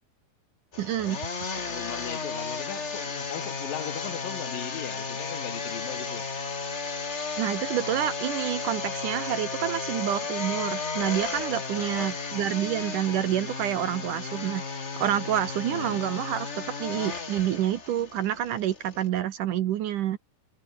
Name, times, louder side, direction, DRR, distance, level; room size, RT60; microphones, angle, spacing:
sound 1, 0.7-19.1, left 4 dB, 40° left, 0.9 m, -34 dB
voice 1, 0.8-1.2 7.4-20.2, right 11 dB, 65° right, 2.2 m, -28 dB
voice 2, 1.7-6.2 11.8-12.2 15.7-16.0, left 11 dB, 65° left, 3.0 m, -38 dB
omnidirectional pair, 4.7 m